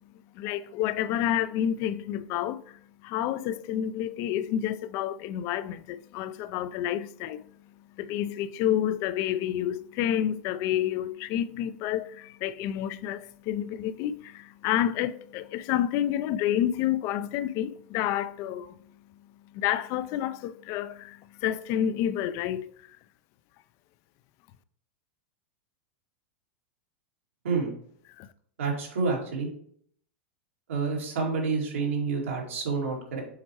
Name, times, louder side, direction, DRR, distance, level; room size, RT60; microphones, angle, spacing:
voice 1, 0.4-2.8 3.0-7.4 8.0-18.7 19.5-22.7 28.2-28.3, left 11 dB, 45° left, 0.4 m, -29 dB
voice 2, 28.6-29.5 30.7-33.2, right 4 dB, 90° right, 2.3 m, -28 dB
7.2 x 4.3 x 3.0 m
hypercardioid pair, 120°, 7 cm